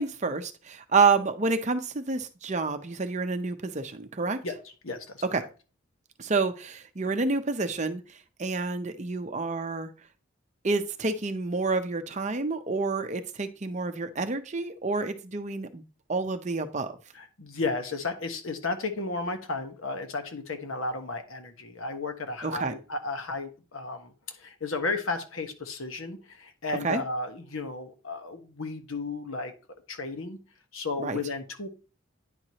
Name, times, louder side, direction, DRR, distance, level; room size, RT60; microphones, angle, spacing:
voice 1, 0.0-4.4 5.3-5.5 6.2-8.0 8.4-9.9 10.6-15.8 16.1-17.0 22.4-22.7 26.8-27.0 31.0-31.2, right 4 dB, 35° right, 8 dB, 0.6 m, -28 dB
voice 2, 4.8-5.2 17.1-24.1 24.4-29.5 29.9-30.4 30.7-31.7, left 3 dB, 75° left, 6 dB, 1.2 m, -33 dB
9.9 x 4.6 x 2.8 m, 0.34 s
head